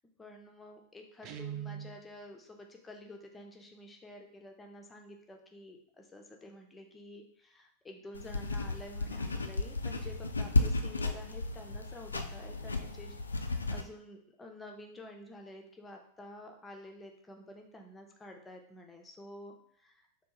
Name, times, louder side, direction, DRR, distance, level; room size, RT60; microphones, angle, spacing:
voice 1, 0.2-20.1, left 1 dB, 10° left, 2 dB, 0.6 m, -50 dB
Guitar, 1.2-2.0, right 9 dB, 35° right, 0.4 m, -41 dB
sound 1, 8.1-13.8, left 3 dB, 80° left, 0.3 m, -33 dB
3.5 x 2.2 x 4.2 m, 0.64 s
figure-of-eight pair, 90°, 0 cm